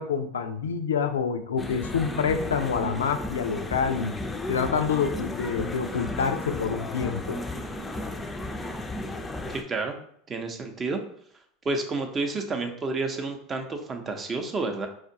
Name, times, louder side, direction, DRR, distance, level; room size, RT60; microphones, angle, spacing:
voice 1, 0.0-4.2 4.5-7.4, left 6 dB, 90° left, 8 dB, 0.3 m, -27 dB
sound 1, 1.6-9.6, left 2 dB, 15° left, 0.4 m, -34 dB
voice 2, 9.5-10.0 10.3-11.0 11.6-14.9, right 3 dB, 30° right, 5 dB, 0.6 m, -30 dB
4.4 x 2.4 x 2.7 m, 0.67 s
hypercardioid pair, 90°, 0 cm